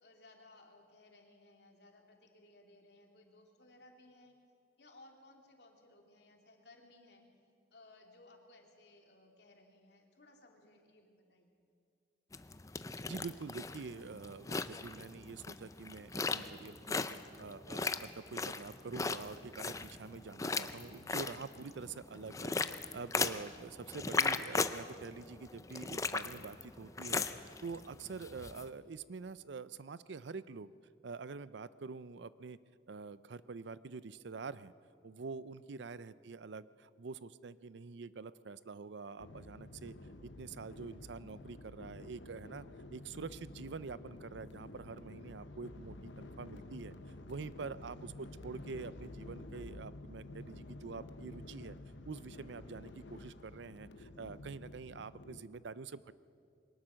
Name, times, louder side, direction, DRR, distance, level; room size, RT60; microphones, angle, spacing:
voice 1, 0.0-4.3 4.8-7.2 7.7-11.6 35.6-35.8, left 2 dB, 65° left, 2 dB, 2.7 m, -61 dB
sound 1, 12.3-28.6, left 4 dB, 15° left, 0.5 m, -38 dB
voice 2, 13.0-17.1 17.4-30.7 31.0-32.6 32.9-34.7 35.0-39.9 40.2-42.7 42.9-46.9 47.3-51.8 52.1-56.1, right 4 dB, 80° right, 17 dB, 0.5 m, -46 dB
sound 2, 39.2-55.4, left 2 dB, 85° left, 1.0 m, -50 dB
22.5 x 19.0 x 6.3 m, 2.4 s
head